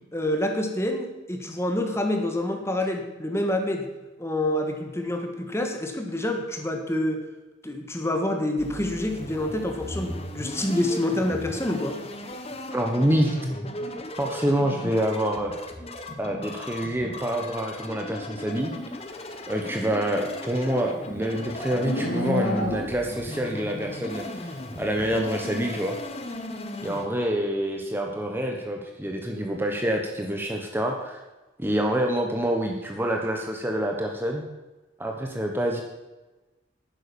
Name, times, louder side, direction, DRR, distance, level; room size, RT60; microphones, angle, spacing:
voice 1, 0.1-3.9 4.2-7.2 7.6-12.0, left 1 dB, 15° left, 4 dB, 1.5 m, -27 dB
sound 1, 8.6-27.0, left 1 dB, 30° left, 1.2 m, -37 dB
voice 2, 12.7-13.4 14.2-15.5 16.2-18.7 19.5-26.0 26.8-31.2 31.6-34.4 35.0-35.8, right 1 dB, 10° right, 1 dB, 1.2 m, -27 dB
Livestock farm animals working animals, 20.0-23.2, left 1 dB, 75° left, 2.4 m, -31 dB
11.0 x 9.5 x 7.1 m, 1.1 s
head